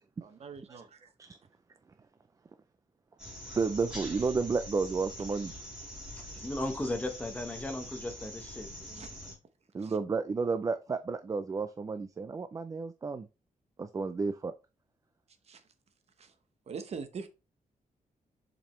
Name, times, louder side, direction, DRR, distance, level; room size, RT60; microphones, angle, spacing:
voice 1, 0.2-1.1 8.9-9.1 9.8-9.9 15.5-15.6 16.2-16.3 16.7-17.3, right 5 dB, 50° right, 0.9 m, -43 dB
sound 1, 3.2-9.3, left 1 dB, 5° right, 4.4 m, -44 dB
voice 2, 3.6-5.5 9.7-13.3 13.8-14.5, right 4 dB, 25° right, 0.4 m, -32 dB
voice 3, 6.4-9.3, left 1 dB, 10° left, 1.0 m, -37 dB
7.2 x 5.1 x 3.1 m
wide cardioid pair, 180°, 14 cm